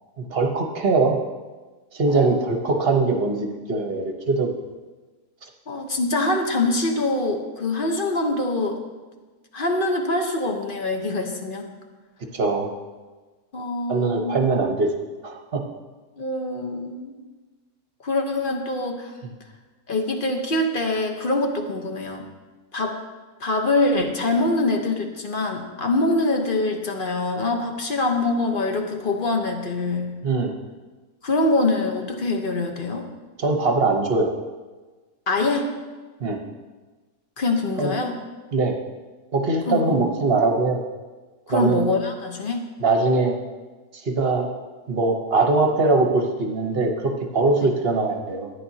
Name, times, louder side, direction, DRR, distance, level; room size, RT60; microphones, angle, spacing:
voice 1, 0.2-1.2 1.9-4.5 12.3-12.7 13.9-14.9 15.2-15.6 30.2-30.5 33.4-34.3 36.2-36.4 37.8-37.9 38.5-38.7 39.3-40.8 41.5-41.9 42.8-43.4 43.9-44.5 44.9-48.5, right 3 dB, 45° right, 3 dB, 1.1 m, -21 dB
voice 2, 2.1-2.5 5.7-8.8 9.5-11.7 13.5-14.4 16.2-17.2 18.0-19.1 19.9-22.3 22.7-23.0 23.4-30.1 31.2-33.1 35.3-35.7 37.4-38.2 39.7-40.0 41.5-42.6 47.6-47.7, left 2 dB, 40° left, 3 dB, 1.0 m, -24 dB
13.5 x 9.7 x 2.8 m, 1.3 s
omnidirectional pair, 1.7 m